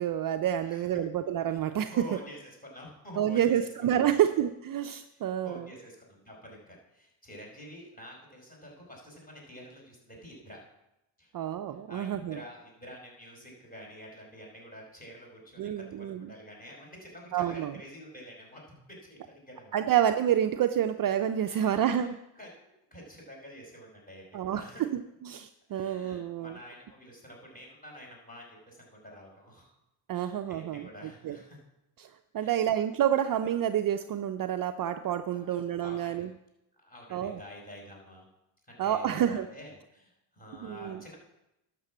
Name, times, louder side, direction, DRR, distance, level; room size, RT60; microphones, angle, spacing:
voice 1, 0.0-2.0 3.2-5.7 11.3-12.4 15.6-16.3 17.3-17.8 19.7-22.2 24.3-26.6 30.1-30.9 31.2-31.4 32.0-36.3 37.1-37.4 38.8-39.5 40.6-41.0, right 10 dB, 45° right, 8 dB, 0.6 m, -28 dB
voice 2, 1.4-3.5 3.9-4.1 5.1-10.6 11.2-11.3 11.9-19.7 21.4-22.1 22.3-22.5 22.9-24.8 25.7-29.7 30.1-31.6 32.4-32.6 35.3-36.3 36.8-38.2 38.7-41.2, equal, 15° left, -1 dB, 5.1 m, -48 dB
11.0 x 6.9 x 7.3 m, 0.89 s
cardioid pair, 90°, 50 cm